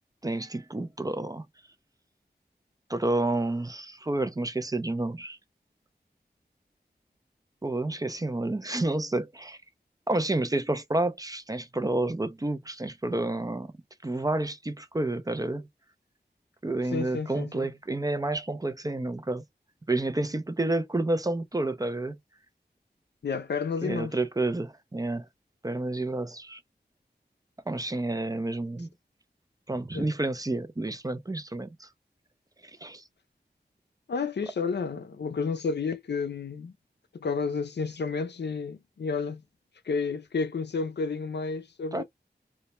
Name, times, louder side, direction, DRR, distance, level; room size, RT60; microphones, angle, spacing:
voice 1, 0.2-1.5 2.9-5.4 7.6-9.6 10.1-13.7 14.0-15.7 16.6-19.4 19.9-22.2 23.8-25.3 25.6-26.6 27.7-28.9 29.7-31.9 32.8-33.0 41.9-42.0, right 2 dB, 20° right, 0.4 m, -29 dB
voice 2, 16.9-17.7 23.2-24.2 29.9-30.1 34.1-36.7 37.1-39.4 39.8-42.0, left 5 dB, 75° left, 0.4 m, -31 dB
2.1 x 2.0 x 2.8 m
wide cardioid pair, 65°, 18 cm